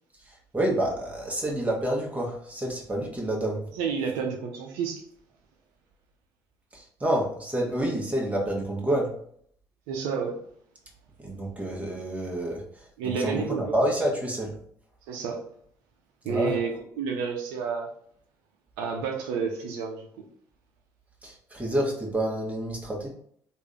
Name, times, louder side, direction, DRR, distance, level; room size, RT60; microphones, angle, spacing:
voice 1, 0.3-3.7 6.7-9.1 11.2-14.6 16.2-16.6 21.2-23.1, right 1 dB, 15° right, -1 dB, 1.3 m, -28 dB
voice 2, 3.8-5.0 9.9-10.4 13.0-13.7 15.1-15.4 16.2-17.9 18.8-20.1, right 6 dB, 85° right, 1 dB, 0.6 m, -30 dB
3.3 x 2.6 x 3.3 m, 0.64 s
supercardioid pair, 70°, 9 cm